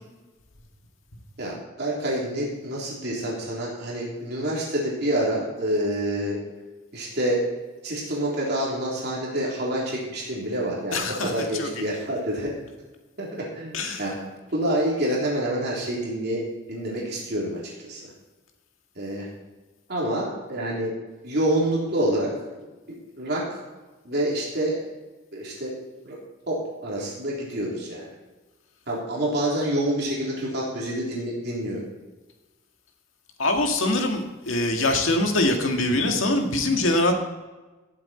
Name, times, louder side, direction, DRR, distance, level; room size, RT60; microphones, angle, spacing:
voice 1, 1.4-6.4 6.9-7.4 7.8-12.5 13.2-14.2 14.5-16.4 16.7-18.0 18.9-19.3 19.9-20.9 21.2-22.3 23.2-23.6 24.0-24.8 25.3-25.7 26.0-26.2 26.5-28.1 28.9-31.8, right 1 dB, 50° right, -4 dB, 3.4 m, -27 dB
voice 2, 10.9-11.3 11.6-11.7 13.7-14.0 33.4-37.1, left 2 dB, 80° left, 3 dB, 1.8 m, -23 dB
16.5 x 7.8 x 4.3 m, 1.2 s
head